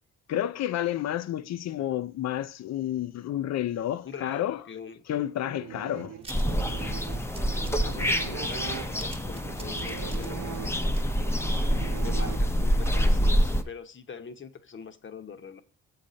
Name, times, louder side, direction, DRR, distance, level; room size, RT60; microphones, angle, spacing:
voice 1, 0.3-4.6 5.1-6.2, left 12 dB, 60° left, 0.6 m, -30 dB
voice 2, 4.0-5.0 7.7-11.1 12.0-15.6, left 6 dB, 40° left, 1.0 m, -43 dB
sound 1, 5.4-12.9, right 10 dB, 70° right, 0.8 m, -42 dB
sound 2, 6.2-12.3 12.7-12.8 13.0-13.1, right 3 dB, 20° right, 1.3 m, -50 dB
sound 3, 6.3-13.6, equal, 10° left, 0.7 m, -26 dB
7.4 x 4.2 x 6.3 m
cardioid pair, 90°, 30 cm